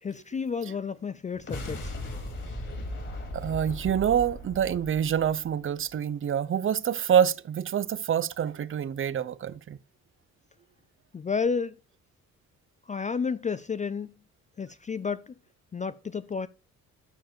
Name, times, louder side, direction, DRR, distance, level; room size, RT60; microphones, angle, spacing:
voice 1, 0.0-2.0 11.1-11.7 12.9-14.1 14.6-15.3 15.7-16.5, left 5 dB, 25° left, 0.4 m, -31 dB
sound 1, 1.3-5.9, left 1 dB, 40° left, 4.3 m, -38 dB
voice 2, 3.3-9.8, right 8 dB, 45° right, 0.7 m, -26 dB
12.5 x 4.7 x 4.4 m
cardioid pair, 90°, 30 cm